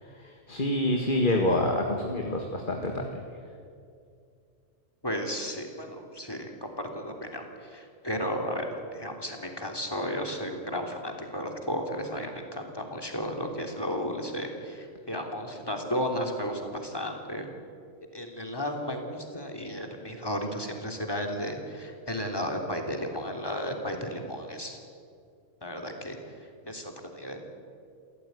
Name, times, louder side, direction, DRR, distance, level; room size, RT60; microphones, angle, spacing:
voice 1, 0.0-3.3, left 1 dB, 40° left, 2 dB, 2.0 m, -27 dB
voice 2, 5.0-17.4 18.1-24.8 25.6-26.2 26.6-27.4, equal, 15° left, 3 dB, 3.1 m, -34 dB
28.5 x 15.0 x 9.5 m, 2.4 s
omnidirectional pair, 1.4 m